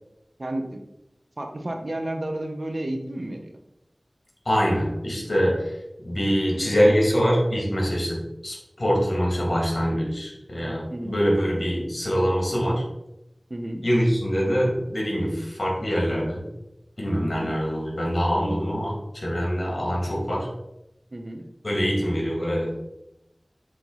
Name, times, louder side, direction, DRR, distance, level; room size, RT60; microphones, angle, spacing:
voice 1, 0.4-0.8 1.4-3.5 10.9-11.1 13.5-13.8 17.2-17.5 21.1-21.4, right 1 dB, 65° right, 4 dB, 1.0 m, -31 dB
voice 2, 4.4-5.7 6.0-12.8 13.8-16.5 17.0-20.5 21.6-22.8, equal, 60° left, -2 dB, 2.4 m, -24 dB
7.5 x 3.8 x 4.0 m, 0.88 s
wide cardioid pair, 45°, 0 cm